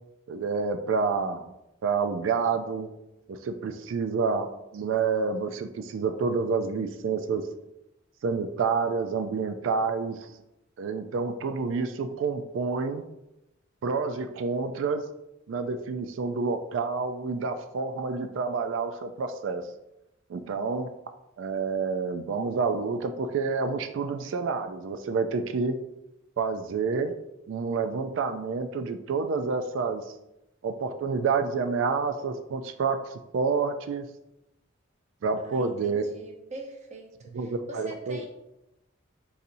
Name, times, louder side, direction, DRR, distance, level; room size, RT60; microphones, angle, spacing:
voice 1, 0.3-1.4 1.8-2.9 3.3-7.4 8.2-10.3 10.8-13.0 13.8-15.0 15.5-19.6 20.3-20.9 21.4-25.8 26.4-27.1 27.5-30.1 30.6-34.0 35.2-36.2 37.3-38.3, right 4 dB, 70° right, 8 dB, 0.3 m, -28 dB
voice 2, 35.4-37.1 37.7-38.3, right 2 dB, 35° right, 2 dB, 0.7 m, -42 dB
4.1 x 4.0 x 2.6 m, 0.89 s
head